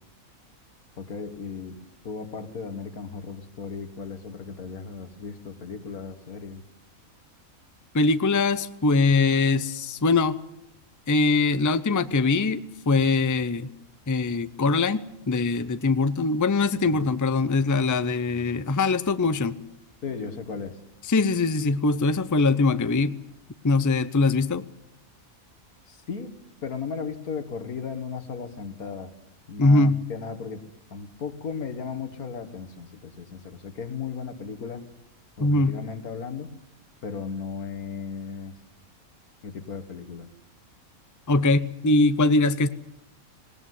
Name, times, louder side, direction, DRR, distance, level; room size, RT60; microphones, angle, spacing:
voice 1, 1.0-1.8 2.0-6.6 16.8-17.1 20.0-20.8 25.9-26.3 26.6-29.1 29.5-30.6 30.9-34.8 35.4-36.5 37.0-38.5 39.4-40.3, left 5 dB, 90° left, 9 dB, 2.2 m, -36 dB
voice 2, 7.9-10.4 11.1-13.7 14.1-19.6 21.1-23.2 23.6-24.6 29.6-30.0 35.4-35.8 41.3-42.7, left 3 dB, 20° left, 13 dB, 0.5 m, -22 dB
19.5 x 19.0 x 9.5 m, 0.79 s
omnidirectional pair, 1.5 m